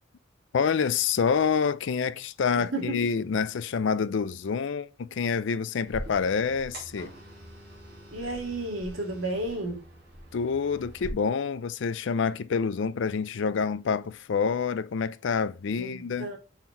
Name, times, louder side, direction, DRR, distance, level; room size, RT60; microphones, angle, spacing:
voice 1, 0.5-7.1 10.3-16.3, left 6 dB, 65° left, 0.4 m, -27 dB
voice 2, 2.6-3.1 8.1-9.8 15.8-16.4, right 2 dB, 85° right, 2.1 m, -32 dB
sound 1, 5.9-11.1, equal, 45° right, 2.7 m, -44 dB
5.7 x 4.4 x 4.4 m
head